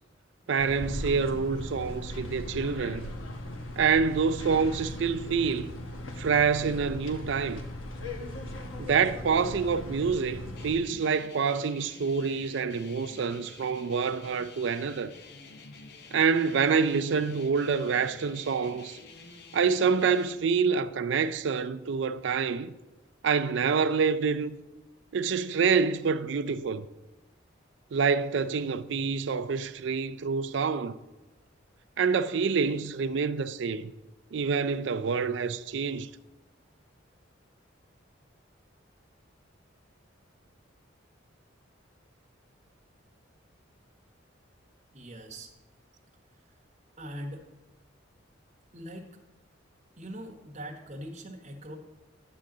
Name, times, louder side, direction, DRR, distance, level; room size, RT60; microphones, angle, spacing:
voice 1, 0.5-3.1 3.8-5.7 6.2-7.6 8.8-15.1 16.1-19.0 19.5-22.7 23.2-24.6 25.1-26.9 27.9-31.0 32.0-33.9 34.3-36.1, right 5 dB, 65° right, 0.4 m, -27 dB
sound 1, 0.6-10.7, left 1 dB, 90° left, 1.1 m, -38 dB
sound 2, 10.6-20.3, left 3 dB, 55° left, 0.7 m, -49 dB
voice 2, 44.9-45.5 47.0-47.5 48.7-49.1 50.0-51.8, equal, 35° right, 1.1 m, -41 dB
10.5 x 3.8 x 7.2 m
head